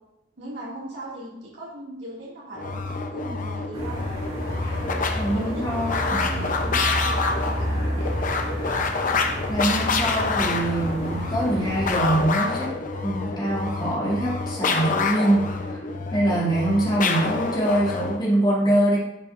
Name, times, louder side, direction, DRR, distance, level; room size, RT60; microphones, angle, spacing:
voice 1, 0.4-4.0 4.8-8.2, right 1 dB, 75° right, -6 dB, 2.4 m, -39 dB
sound 1, 2.5-18.2, left 4 dB, 45° left, 0.7 m, -27 dB
sound 2, 3.7-12.3, equal, 35° right, 2.6 m, -30 dB
voice 2, 5.2-6.5 9.5-12.7 13.0-15.8 16.1-19.0, right 1 dB, 25° left, -6 dB, 2.4 m, -24 dB
10.5 x 5.6 x 2.6 m, 0.90 s
head